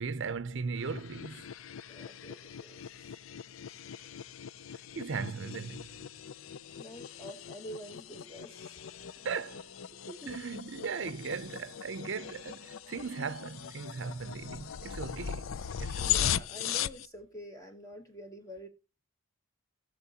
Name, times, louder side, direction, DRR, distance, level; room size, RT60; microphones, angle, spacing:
voice 1, 0.0-1.4 5.0-5.9 9.2-9.6 10.3-15.5 15.8-16.1, right 5 dB, 60° right, 0.6 m, -37 dB
sound 1, 0.8-17.1, left 10 dB, 70° left, 0.4 m, -39 dB
voice 2, 1.9-2.8 6.8-8.8 10.1-10.3 16.0-18.7, equal, 15° left, 1.1 m, -47 dB
17.5 x 6.4 x 2.8 m
head